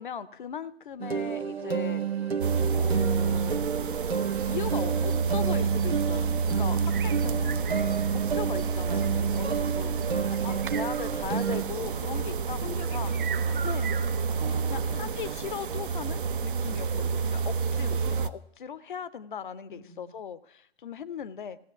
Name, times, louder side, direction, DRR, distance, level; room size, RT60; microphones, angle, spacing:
voice 1, 0.0-2.0 2.7-3.6 4.4-7.7 8.1-13.1 13.6-14.0 14.7-21.6, left 8 dB, 55° left, 16 dB, 0.6 m, -39 dB
sound 1, 1.0-11.6, right 7 dB, 80° right, 1.1 m, -31 dB
sound 2, 2.4-18.3, right 5 dB, 55° right, 0.7 m, -29 dB
voice 2, 10.4-11.1 12.1-15.5 16.6-16.9 19.7-20.1, left 7 dB, 5° left, 0 dB, 0.4 m, -47 dB
16.0 x 6.4 x 8.0 m, 0.78 s
figure-of-eight pair, 125°, 31 cm